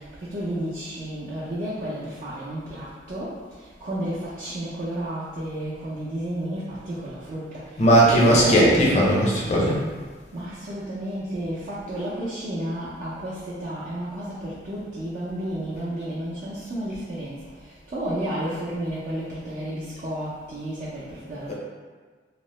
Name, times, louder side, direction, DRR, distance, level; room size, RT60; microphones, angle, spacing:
voice 1, 0.3-3.3 3.8-7.5 7.9-8.9 10.3-17.3 17.9-21.5, right 1 dB, 45° right, -10 dB, 0.5 m, -31 dB
voice 2, 7.8-9.8 21.5-21.6, right 1 dB, 40° left, -5 dB, 0.6 m, -18 dB
3.0 x 2.0 x 3.0 m, 1.5 s
head